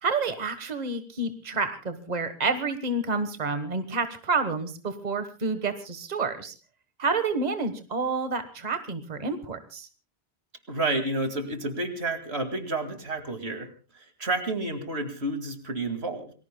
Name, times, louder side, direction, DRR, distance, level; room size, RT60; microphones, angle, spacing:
voice 1, 0.0-6.5 7.0-9.9, right 4 dB, 40° right, 9 dB, 1.5 m, -29 dB
voice 2, 10.7-13.7 14.0-16.3, right 2 dB, 85° right, 7 dB, 2.5 m, -30 dB
28.0 x 20.5 x 2.2 m, 0.33 s
omnidirectional pair, 1.1 m